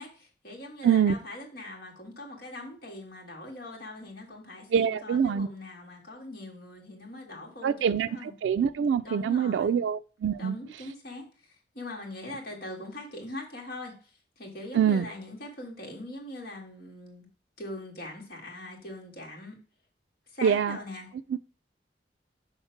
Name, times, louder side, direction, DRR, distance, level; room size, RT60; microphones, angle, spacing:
voice 1, 0.0-8.3 9.0-9.8 10.4-17.3 17.6-19.6 20.3-21.1, left 1 dB, 55° left, 1.9 m, -42 dB
voice 2, 0.8-1.2 4.7-5.5 7.6-10.6 14.7-15.1 20.4-20.8, right 7 dB, 90° right, 0.3 m, -25 dB
5.7 x 3.6 x 5.7 m
head